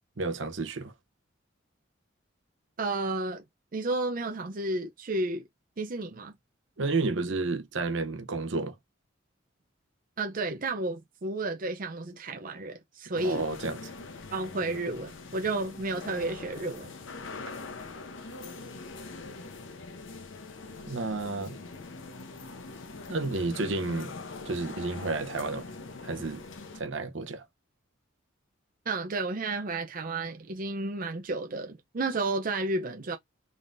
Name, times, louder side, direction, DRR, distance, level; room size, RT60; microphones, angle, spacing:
voice 1, 0.2-0.9 6.8-8.7 13.1-13.8 20.9-21.6 23.1-24.1 24.4-25.7 26.0-26.4 26.7-27.4, right 3 dB, 70° right, 0.8 m, -31 dB
voice 2, 2.8-3.4 3.7-5.4 5.8-6.3 10.2-13.5 14.3-16.9 28.9-33.2, right 2 dB, 45° right, 0.6 m, -32 dB
sound 1, 13.2-26.8, left 3 dB, 75° left, 0.8 m, -43 dB
4.0 x 3.7 x 2.6 m
head